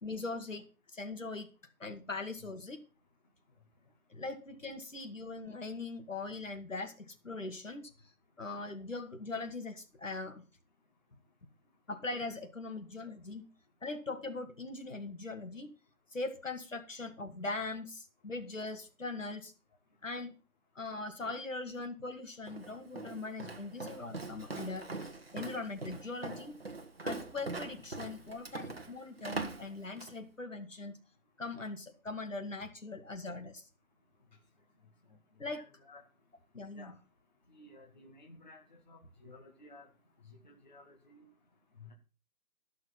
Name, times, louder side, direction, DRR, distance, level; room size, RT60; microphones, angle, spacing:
voice 1, 0.0-0.6 0.9-1.5 1.8-2.8 4.1-7.9 8.4-10.4 11.9-13.5 13.8-15.7 16.1-19.5 20.0-20.3 20.8-24.9 25.3-26.6 27.0-31.0 31.4-33.6 35.4-35.6 36.5-36.9, left 3 dB, 60° left, 5 dB, 2.2 m, -41 dB
Walk footsteps, 22.5-30.2, right 3 dB, 40° right, 1.3 m, -42 dB
voice 2, 35.5-36.0 36.7-36.9 37.5-39.9 40.3-41.3 41.8-41.9, left 2 dB, 30° left, 0 dB, 1.6 m, -55 dB
14.0 x 6.3 x 5.7 m, 0.34 s
figure-of-eight pair, 175°, 44 cm